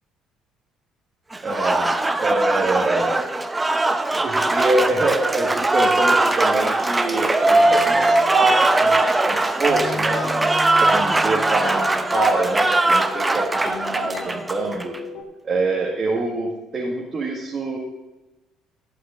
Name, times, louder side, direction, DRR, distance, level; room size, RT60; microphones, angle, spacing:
Applause, 1.3-15.0, right 2 dB, 20° right, 0.7 m, -20 dB
voice 1, 1.4-3.3 4.1-10.3 10.8-14.9 15.4-17.8, right 2 dB, 40° right, -3 dB, 1.6 m, -25 dB
sound 1, 7.6-15.2, left 4 dB, 65° left, 1.1 m, -36 dB
11.5 x 11.5 x 2.5 m, 1.1 s
hypercardioid pair, 55°, 0 cm